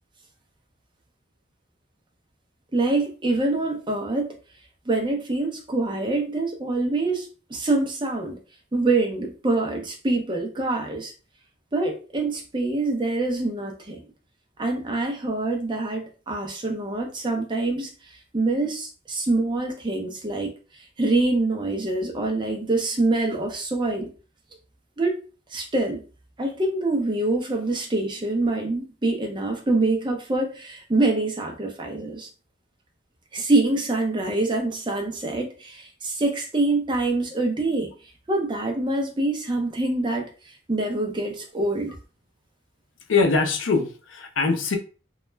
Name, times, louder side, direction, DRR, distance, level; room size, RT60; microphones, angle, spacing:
voice 1, 2.7-4.3 4.9-8.4 8.7-11.1 11.7-14.0 14.6-20.5 21.0-24.1 25.0-25.2 25.5-26.0 26.4-32.3 33.3-37.9 38.3-40.3 40.7-41.9, right 2 dB, 25° right, 0.5 m, -25 dB
voice 2, 43.1-44.8, left 4 dB, 75° left, 0.5 m, -22 dB
2.2 x 2.0 x 3.2 m
head